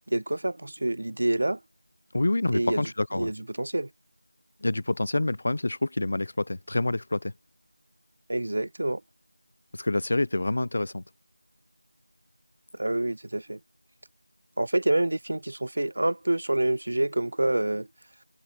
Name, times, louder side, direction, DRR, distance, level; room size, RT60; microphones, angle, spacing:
voice 1, 0.1-1.6 2.5-2.9 3.2-3.9 8.3-9.0 12.8-13.6 14.6-17.9, right 1 dB, 40° right, 2.9 m, -27 dB
voice 2, 2.1-3.3 4.6-7.3 9.7-11.0, left 2 dB, 30° left, 5.4 m, -27 dB
figure-of-eight pair, 180°, 0 cm